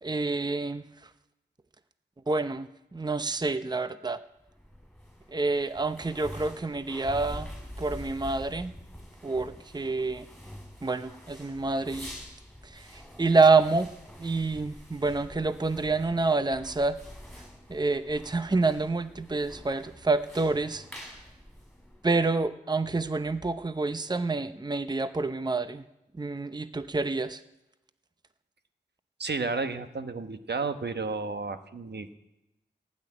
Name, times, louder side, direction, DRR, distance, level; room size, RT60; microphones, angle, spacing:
voice 1, 0.0-0.8 2.3-4.2 5.3-7.5 7.8-8.7 9.2-10.3 10.8-12.1 12.6-13.9 14.2-17.0 17.7-20.8 22.0-25.8 26.2-27.4, right 3 dB, 25° right, 11 dB, 0.7 m, -27 dB
sound 1, 4.4-22.3, equal, ahead, 6.8 m, -46 dB
voice 2, 29.2-32.2, right 4 dB, 70° right, 9 dB, 1.1 m, -32 dB
16.0 x 8.5 x 9.8 m, 0.93 s
wide cardioid pair, 70°, 18 cm